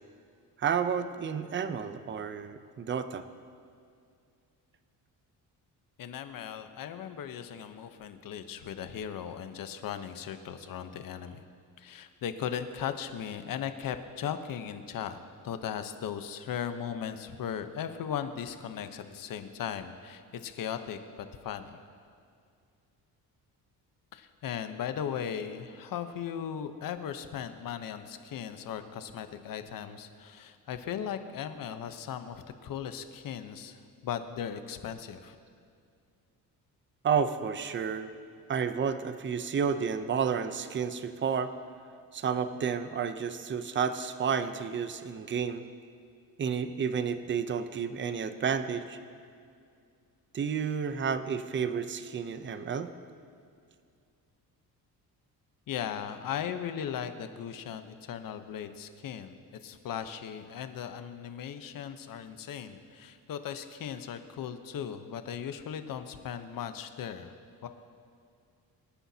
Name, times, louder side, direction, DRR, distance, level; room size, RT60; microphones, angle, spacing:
voice 1, 0.6-3.2 37.0-38.1 38.5-41.5 42.1-45.6 46.4-49.0 50.3-52.9, right 6 dB, 30° right, 10 dB, 0.6 m, -31 dB
voice 2, 6.0-11.4 11.8-15.2 15.4-21.8 24.1-35.4 55.7-67.3 67.6-67.7, left 8 dB, 60° left, 9 dB, 1.0 m, -37 dB
25.5 x 10.0 x 2.8 m, 2.3 s
cardioid pair, 120°, 38 cm